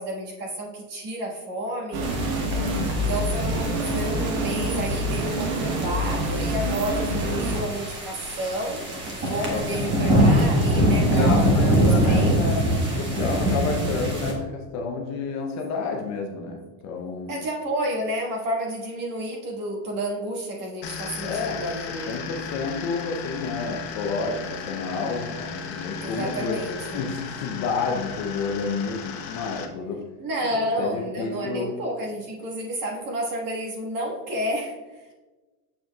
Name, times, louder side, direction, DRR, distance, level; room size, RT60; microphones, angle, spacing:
voice 1, 0.0-2.2 2.9-12.5 17.3-22.2 26.0-27.0 30.2-35.1, right 1 dB, 40° right, -1 dB, 1.5 m, -31 dB
sound 1, 1.9-7.6, right 1 dB, 70° right, 1.1 m, -26 dB
sound 2, 2.0-14.3, right 1 dB, 20° right, 1.1 m, -24 dB
voice 2, 2.6-3.0 9.3-10.0 10.8-12.7 13.0-17.3 21.2-26.6 26.9-30.1 30.4-31.8, left 4 dB, 35° left, 1 dB, 0.6 m, -30 dB
sound 3, 20.8-29.7, left 6 dB, 75° left, 1.0 m, -36 dB
7.1 x 6.0 x 2.2 m, 1.2 s
supercardioid pair, 150°, 50 cm